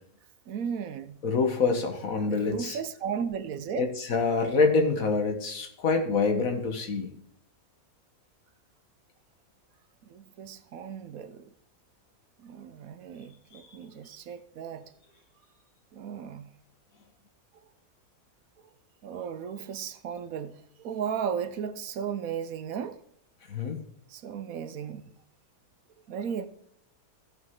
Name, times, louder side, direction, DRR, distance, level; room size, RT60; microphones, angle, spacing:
voice 1, 0.5-1.2 2.3-3.9 10.1-11.5 12.4-14.9 15.9-16.5 19.0-23.0 24.1-25.0 26.1-26.5, right 7 dB, 70° right, 1.1 m, -35 dB
voice 2, 1.2-2.8 3.8-7.1 23.5-23.8, left 4 dB, 65° left, 1.8 m, -26 dB
14.5 x 5.6 x 3.7 m
omnidirectional pair, 1.6 m